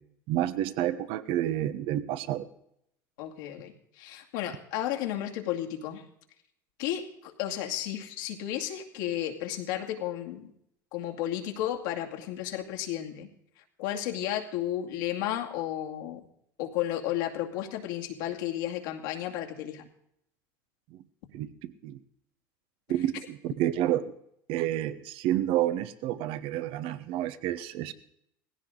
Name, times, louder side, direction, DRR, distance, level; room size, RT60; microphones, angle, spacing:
voice 1, 0.3-2.5 21.3-22.0 22.9-24.1 24.5-27.9, right 12 dB, 65° right, 14 dB, 1.1 m, -29 dB
voice 2, 3.2-6.0 6.8-10.5 10.9-13.3 13.8-16.2 16.6-19.8, left 12 dB, 75° left, 2 dB, 2.4 m, -33 dB
18.5 x 16.0 x 3.9 m, 0.74 s
hypercardioid pair, 85°, 10 cm